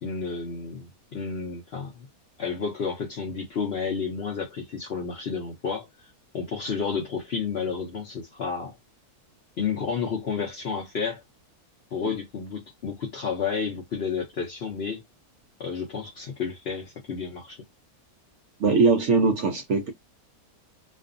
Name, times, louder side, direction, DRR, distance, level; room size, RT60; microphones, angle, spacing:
voice 1, 0.0-2.1 2.4-6.1 6.3-8.8 9.6-11.2 11.9-15.0 15.6-17.6, left 5 dB, 60° left, 0.6 m, -31 dB
voice 2, 18.6-19.9, right 4 dB, 65° right, 0.8 m, -21 dB
2.5 x 2.3 x 2.4 m
omnidirectional pair, 1.6 m